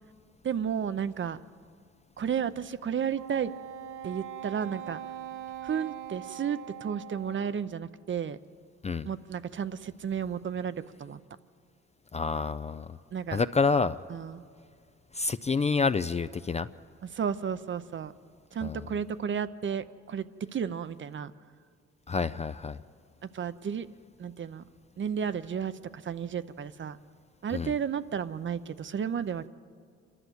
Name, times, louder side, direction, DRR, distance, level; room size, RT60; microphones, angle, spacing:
voice 1, 0.4-1.4 2.2-3.5 4.0-5.0 5.6-8.4 9.0-11.2 13.1-13.4 14.1-14.4 17.0-18.1 18.5-21.3 23.2-23.9 24.2-24.6 25.0-27.0 27.4-29.5, right 7 dB, 40° right, 13 dB, 0.7 m, -33 dB
Wind instrument woodwind instrument, 3.1-7.7, right 10 dB, 90° right, 1.0 m, -42 dB
voice 2, 12.1-13.0 13.3-14.0 15.1-16.7 18.6-18.8 22.1-22.8 27.5-27.7, left 4 dB, 20° left, 12 dB, 0.4 m, -28 dB
28.0 x 12.0 x 8.0 m, 2.1 s
cardioid pair, 90°, 30 cm